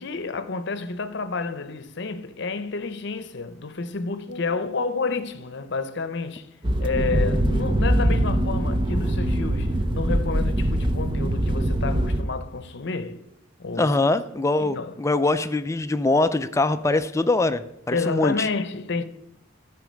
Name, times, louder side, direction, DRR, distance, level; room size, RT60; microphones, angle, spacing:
voice 1, 0.0-6.5 6.8-13.2 13.6-14.0 14.6-15.0 17.9-19.0, left 4 dB, 60° left, 0.7 m, -30 dB
sound 1, 6.6-12.2, right 1 dB, 25° right, 0.6 m, -23 dB
voice 2, 13.8-18.5, left 2 dB, 15° left, 0.4 m, -23 dB
12.5 x 4.8 x 6.2 m
head